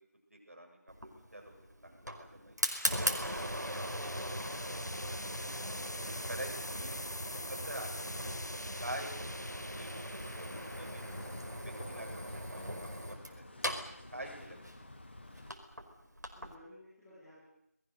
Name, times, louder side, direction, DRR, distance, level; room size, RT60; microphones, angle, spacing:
voice 1, 0.3-1.6 1.8-2.6 3.3-3.9 4.2-5.0 5.9-7.2 7.5-8.5 8.8-11.1 11.6-12.7 13.0-13.5 14.1-14.7, right 1 dB, 55° right, 3 dB, 7.7 m, -47 dB
Fire, 0.9-16.5, equal, 90° right, 5.0 m, -40 dB
sound 1, 2.6-13.8, left 1 dB, 85° left, 1.1 m, -46 dB
voice 2, 3.5-3.8 14.2-14.5 16.3-17.4, left 1 dB, 5° left, -14 dB, 4.0 m, -57 dB
sound 2, 9.1-15.5, left 2 dB, 40° left, 1.7 m, -51 dB
29.5 x 21.0 x 6.7 m, 0.79 s
figure-of-eight pair, 170°, 9 cm